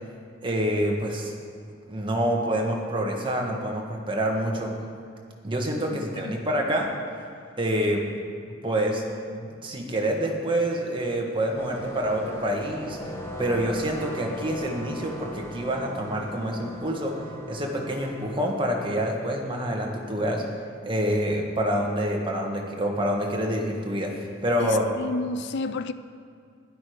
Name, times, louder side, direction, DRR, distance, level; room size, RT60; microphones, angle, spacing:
voice 1, 0.4-1.3 1.9-4.7 5.4-6.9 7.6-8.1 8.6-9.0 9.3-13.0 13.4-17.1 17.5-20.4 20.8-24.8, equal, 25° right, 0 dB, 1.5 m, -27 dB
voice 2, 5.9-6.5 24.6-25.9, left 3 dB, 60° left, 13 dB, 0.4 m, -31 dB
sound 1, 11.6-18.6, left 1 dB, 15° left, 1.2 m, -38 dB
12.5 x 11.0 x 5.1 m, 2.2 s
head